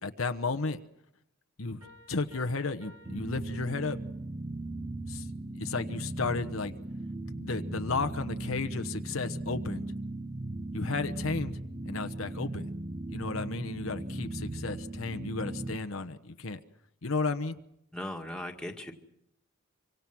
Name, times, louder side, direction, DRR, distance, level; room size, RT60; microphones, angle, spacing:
voice 1, 0.0-0.8 1.6-1.8 2.1-4.0 5.1-5.3 5.5-6.7 7.3-9.9 10.7-12.7 13.1-16.6 17.0-17.6, left 3 dB, 65° left, 8 dB, 1.1 m, -33 dB
Piano, 1.8-4.3, left 1 dB, 80° right, 6.1 m, -57 dB
sound 1, 3.0-15.8, right 2 dB, 25° right, 1.1 m, -38 dB
voice 2, 17.9-18.9, left 1 dB, 5° left, 2 dB, 2.0 m, -38 dB
25.5 x 24.5 x 6.1 m, 0.79 s
head